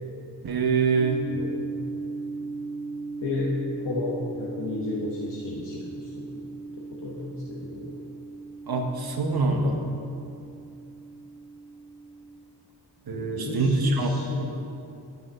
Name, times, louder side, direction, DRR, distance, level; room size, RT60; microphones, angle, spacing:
voice 1, 0.4-1.3 8.7-9.8 13.1-14.2, right 3 dB, 60° right, 3 dB, 1.0 m, -24 dB
sound 1, 1.0-12.3, right 3 dB, 5° left, 1.7 m, -38 dB
voice 2, 3.8-6.2 7.0-7.9 9.3-10.0 13.1-14.5, left 2 dB, 85° left, -5 dB, 1.3 m, -33 dB
11.0 x 7.0 x 5.4 m, 2.6 s
wide cardioid pair, 125°, 42 cm